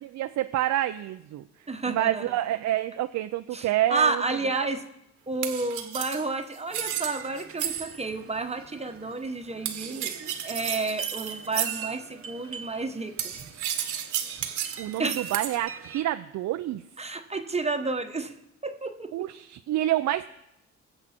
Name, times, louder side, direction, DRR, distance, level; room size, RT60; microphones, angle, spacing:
voice 1, 0.0-1.4 1.9-4.7 14.8-16.8 19.1-20.3, right 13 dB, 70° right, 8 dB, 0.5 m, -28 dB
voice 2, 1.7-2.2 3.5-4.8 5.3-10.1 10.4-13.1 15.0-15.3 17.0-18.3 18.6-19.1, right 3 dB, 20° right, 7 dB, 1.1 m, -30 dB
sound 1, 5.4-8.1 9.7-12.0 13.2-15.6, right 10 dB, 90° right, 1.4 m, -33 dB
sound 2, 6.7-16.0, right 6 dB, 45° right, 1.1 m, -43 dB
21.0 x 7.8 x 4.4 m, 0.83 s
cardioid pair, 90°, 30 cm